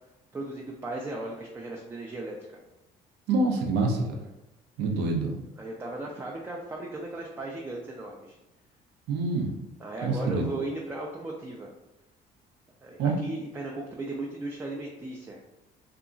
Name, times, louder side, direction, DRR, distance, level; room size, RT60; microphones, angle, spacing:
voice 1, 0.3-2.6 5.6-8.4 9.8-11.7 12.8-15.4, right 2 dB, 15° right, -1 dB, 0.3 m, -36 dB
voice 2, 3.3-4.1 4.8-5.3 9.1-9.5 10.0-10.5 13.0-13.1, right 3 dB, 80° right, 1 dB, 0.6 m, -26 dB
2.8 x 2.3 x 2.5 m, 0.94 s
cardioid pair, 110°, 17 cm